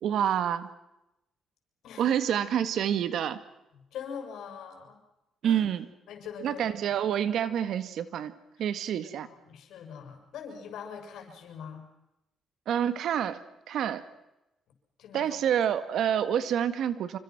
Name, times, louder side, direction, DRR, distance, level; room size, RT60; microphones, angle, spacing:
voice 1, 0.0-0.7 2.0-3.4 5.4-5.9 6.4-8.3 8.6-9.3 12.7-13.4 13.7-14.0 15.1-17.2, right 9 dB, 75° right, 12 dB, 1.9 m, -27 dB
voice 2, 3.7-5.0 5.4-5.6 6.1-6.7 8.6-8.7 9.0-11.8 15.0-15.4, left 7 dB, 80° left, 4 dB, 6.8 m, -42 dB
27.5 x 25.5 x 6.1 m, 0.91 s
cardioid pair, 90°, 0 cm